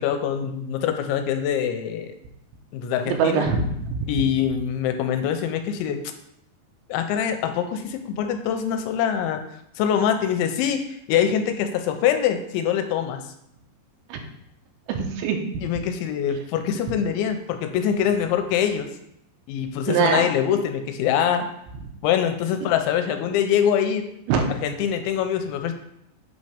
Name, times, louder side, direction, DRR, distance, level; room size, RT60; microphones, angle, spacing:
voice 1, 0.0-2.1 2.7-3.5 4.1-6.0 6.9-9.4 9.8-13.2 15.6-18.9 19.5-21.5 22.0-24.1 24.5-25.7, left 9 dB, 85° left, 7 dB, 3.0 m, -24 dB
voice 2, 3.1-4.1 14.1-14.2 14.9-15.4 19.9-20.3 24.3-24.5, right 6 dB, 90° right, 4 dB, 3.2 m, -23 dB
8.6 x 4.2 x 5.1 m, 0.78 s
omnidirectional pair, 5.3 m